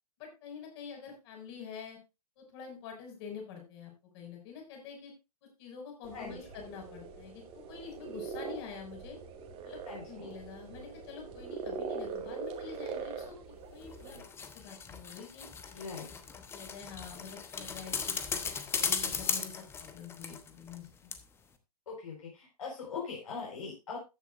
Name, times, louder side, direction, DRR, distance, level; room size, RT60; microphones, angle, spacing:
voice 1, 0.2-2.0 2.4-5.1 5.6-9.2 9.6-9.8 10.1-13.4 13.7-14.2 14.5-15.5 16.1-16.2 16.5-18.2 18.7-19.5 19.8-21.1, left 6 dB, 40° left, 1 dB, 6.1 m, -47 dB
sound 1, 6.0-14.2, right 5 dB, 25° right, 2.0 m, -42 dB
voice 2, 9.8-10.3 15.7-16.1 21.9-24.0, left 5 dB, 55° left, -2 dB, 4.9 m, -41 dB
sound 2, 13.8-20.8 21.1-21.2, left 6 dB, 10° left, 1.0 m, -37 dB
14.5 x 9.9 x 2.6 m, 0.26 s
figure-of-eight pair, 115°, 20 cm